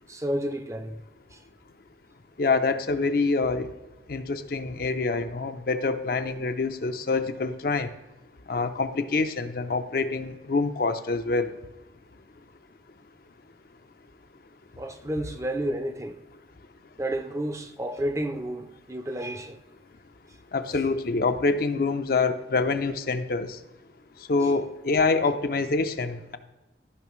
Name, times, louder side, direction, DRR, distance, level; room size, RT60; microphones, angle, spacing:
voice 1, 0.1-1.0 1.3-1.4 14.8-16.2 17.0-19.6, right 1 dB, 15° right, 0.5 m, -31 dB
voice 2, 2.4-3.7 4.1-7.9 8.5-11.5 20.5-23.6 24.3-26.4, left 3 dB, 55° left, 0.5 m, -26 dB
14.0 x 5.7 x 3.1 m
head